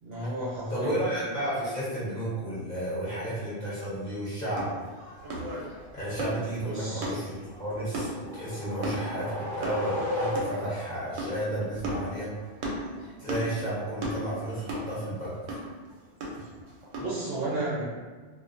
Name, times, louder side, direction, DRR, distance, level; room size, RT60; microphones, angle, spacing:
voice 1, 0.0-1.0 6.5-7.1 13.0-13.3 17.0-17.8, right 2 dB, 60° right, -7 dB, 0.7 m, -33 dB
voice 2, 0.7-4.7 5.9-7.3 7.6-12.3 13.2-15.6, right 1 dB, 40° left, -10 dB, 0.8 m, -32 dB
sound 1, 4.5-17.2, right 1 dB, 90° right, 1.0 m, -37 dB
sound 2, 7.6-10.9, left 1 dB, ahead, 0.9 m, -34 dB
2.4 x 2.2 x 2.4 m, 1.4 s
omnidirectional pair, 1.3 m